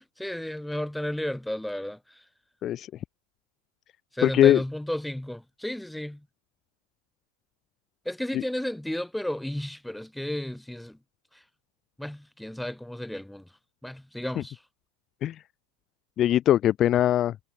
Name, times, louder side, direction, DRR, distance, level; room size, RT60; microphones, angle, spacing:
voice 1, 0.0-2.0 4.1-6.2 8.1-11.0 12.0-13.4 13.8-14.6, left 1 dB, ahead, 2.3 m, -33 dB
voice 2, 4.2-4.6 8.3-8.4 14.4-14.5 15.2-15.4 16.2-17.3, left 12 dB, 30° left, 0.6 m, -21 dB
figure-of-eight pair, 90°, 0 cm